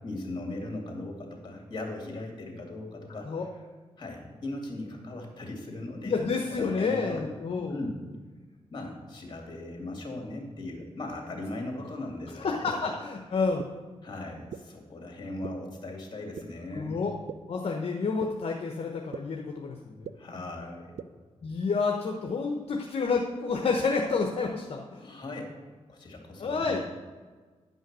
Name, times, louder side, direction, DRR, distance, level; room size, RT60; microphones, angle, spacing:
voice 1, 0.0-3.3 4.0-6.1 6.5-7.2 7.7-8.0 8.7-12.7 14.0-17.0 20.2-21.0 25.0-25.5 25.9-26.9, left 2 dB, 40° left, 1 dB, 2.7 m, -38 dB
voice 2, 6.0-7.7 12.3-13.6 16.7-17.1 17.5-20.1 21.4-25.1 26.4-26.8, left 4 dB, 60° left, 1 dB, 0.9 m, -29 dB
sound 1, 12.7-12.8 13.6-13.7 14.5-14.6 15.4-15.5 16.4-16.5 17.3-17.4 18.2-18.3 19.1-19.2 20.0-20.1 21.0-21.1, right 9 dB, 75° right, 0.4 m, -37 dB
10.5 x 5.6 x 6.1 m, 1.4 s
cardioid pair, 80°, 11 cm